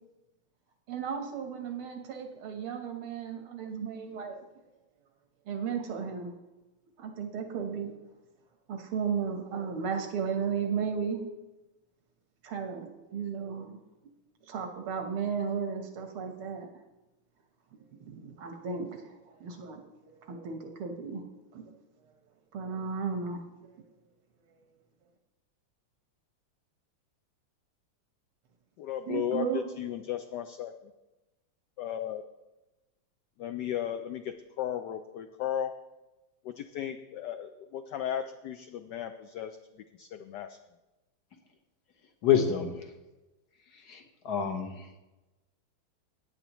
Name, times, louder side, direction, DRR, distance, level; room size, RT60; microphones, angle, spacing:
voice 1, 0.9-4.4 5.5-6.4 7.0-8.0 8.7-11.2 12.4-13.8 14.5-16.7 18.1-19.8 20.2-21.2 21.5-21.7 22.5-23.4 24.5-24.8 29.1-29.7, right 6 dB, 90° right, 4 dB, 2.1 m, -34 dB
voice 2, 28.8-29.5 29.8-30.9 31.8-32.2 33.4-35.7 36.4-40.6, left 10 dB, 75° left, 8 dB, 1.0 m, -35 dB
voice 3, 42.2-42.9 43.9-44.9, left 8 dB, 55° left, 5 dB, 1.5 m, -27 dB
16.5 x 9.1 x 3.0 m, 1.1 s
omnidirectional pair, 2.3 m